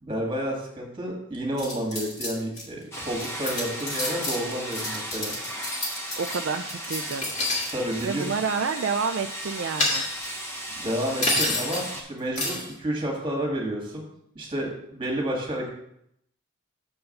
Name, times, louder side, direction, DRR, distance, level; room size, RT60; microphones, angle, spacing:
voice 1, 0.0-5.4 7.7-8.3 10.7-14.0 14.4-15.7, equal, 20° right, -1 dB, 1.8 m, -30 dB
sound 1, 1.6-2.6 3.0-7.7 8.0-8.3 9.4-10.5 11.2-11.9 12.4-12.7, left 2 dB, 35° left, 1.8 m, -29 dB
sound 2, 2.9-12.0, right 1 dB, 10° left, 0.9 m, -36 dB
voice 2, 6.2-7.3 8.0-10.0, right 5 dB, 55° right, 6 dB, 0.4 m, -29 dB
6.5 x 4.7 x 6.5 m, 0.74 s
head